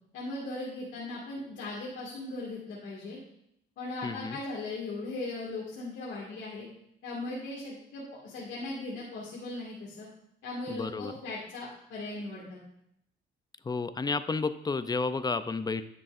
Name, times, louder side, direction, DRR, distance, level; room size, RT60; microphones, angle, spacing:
voice 1, 0.1-3.2 3.8-6.7 7.0-10.1 10.4-12.6, left 2 dB, 75° left, -6 dB, 2.0 m, -38 dB
voice 2, 4.0-4.4 10.7-11.1 13.6-15.8, left 4 dB, 20° left, 12 dB, 0.4 m, -31 dB
10.0 x 6.8 x 2.5 m, 0.74 s
cardioid pair, 90°, 20 cm